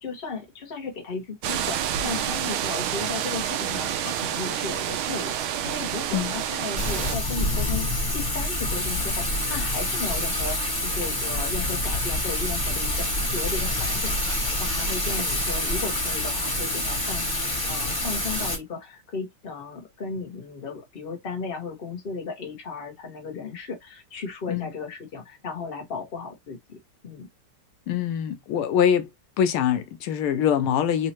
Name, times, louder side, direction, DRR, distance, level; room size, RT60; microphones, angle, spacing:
voice 1, 0.0-26.8 27.0-27.3, left 4 dB, 30° left, 1.3 m, -35 dB
sound 1, 1.4-7.2, right 10 dB, 80° right, 1.5 m, -28 dB
Thunder / Rain, 6.7-18.6, left 1 dB, 10° left, 1.5 m, -27 dB
voice 2, 27.9-29.1 29.4-31.1, left 9 dB, 85° left, 1.5 m, -23 dB
4.3 x 2.7 x 2.9 m
omnidirectional pair, 2.3 m